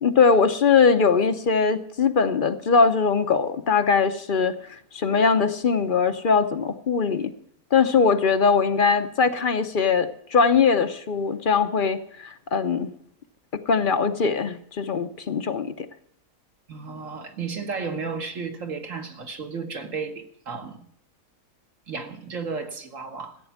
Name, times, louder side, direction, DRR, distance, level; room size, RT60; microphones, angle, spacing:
voice 1, 0.0-4.5 4.9-7.3 7.7-12.9 13.5-15.9, left 5 dB, 45° left, 9 dB, 0.8 m, -21 dB
voice 2, 16.7-20.8 21.9-23.4, right 5 dB, 65° right, 4 dB, 1.8 m, -33 dB
15.0 x 9.0 x 7.2 m, 0.68 s
omnidirectional pair, 1.5 m